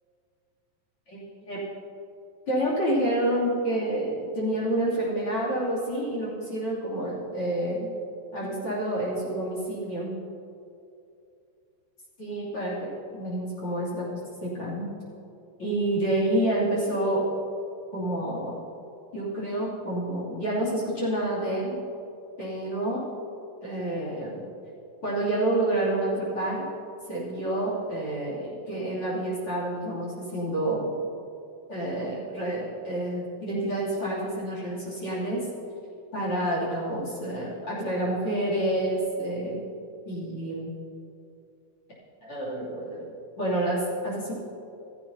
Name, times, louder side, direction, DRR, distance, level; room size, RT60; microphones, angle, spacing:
voice 1, 1.1-1.6 2.5-7.9 8.3-10.2 12.2-14.9 15.6-17.4 17.9-18.6 19.1-21.8 22.4-23.0 23.6-24.4 25.0-26.6 27.1-30.9 31.7-35.5 36.1-39.6 40.0-40.7 42.2-44.3, right 1 dB, 40° left, -4 dB, 3.3 m, -28 dB
15.0 x 15.0 x 2.8 m, 2.6 s
omnidirectional pair, 4.2 m